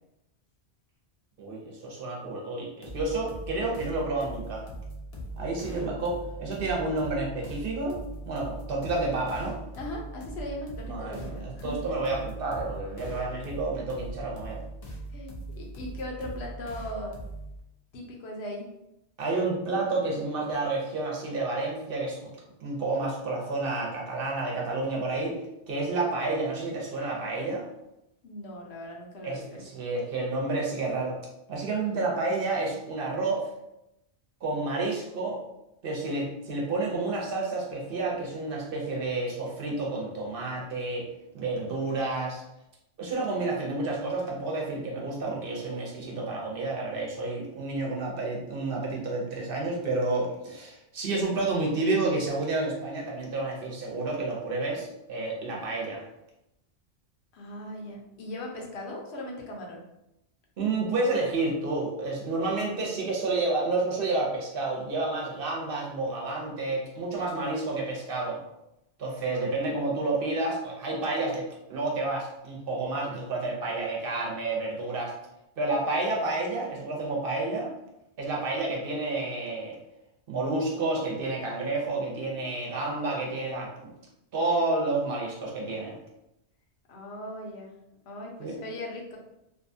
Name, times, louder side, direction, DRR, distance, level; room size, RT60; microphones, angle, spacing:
voice 1, 1.4-4.6 5.4-8.0 8.3-9.6 10.8-14.6 19.2-22.2 22.6-25.4 25.7-27.7 29.2-31.2 31.5-33.5 34.4-35.4 35.8-41.1 41.3-42.4 43.0-56.0 60.6-68.4 69.0-75.1 75.6-77.7 78.2-79.8 80.3-83.7 84.3-86.0 88.4-88.6, right 2 dB, 60° right, -2 dB, 0.8 m, -30 dB
sound 1, 2.8-17.6, right 2 dB, 50° left, 0.5 m, -40 dB
voice 2, 9.8-11.8 15.1-17.1 17.9-18.7 28.2-29.6 57.3-59.8 86.9-87.7 88.1-89.2, left 1 dB, 75° left, -1 dB, 0.9 m, -39 dB
2.6 x 2.3 x 2.6 m, 0.86 s
omnidirectional pair, 1.1 m